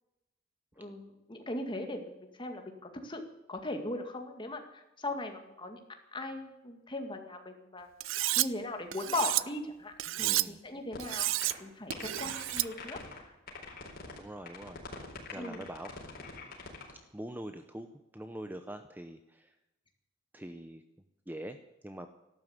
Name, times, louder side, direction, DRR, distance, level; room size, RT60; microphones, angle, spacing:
voice 1, 0.8-3.2 3.5-5.8 6.1-7.9 8.4-9.9 10.2-11.3 11.6-13.3 15.3-15.6, left 2 dB, 25° left, 5 dB, 2.0 m, -38 dB
Cutlery silverware, 8.0-8.5 8.9-9.4 10.0-10.5 11.0-11.5 11.9-12.7, right 16 dB, 80° right, 0.5 m, -30 dB
voice 2, 10.1-10.6 14.2-14.8 15.3-15.9 17.1-19.5 20.3-20.8 21.3-21.6 21.8-22.1, right 1 dB, 10° right, 8 dB, 0.7 m, -43 dB
sound 1, 10.9-11.1 11.4-11.5 11.9-13.2 13.5-14.2 14.5-16.9, left 4 dB, 50° left, 4.4 m, -44 dB
14.0 x 12.0 x 8.3 m, 0.94 s
head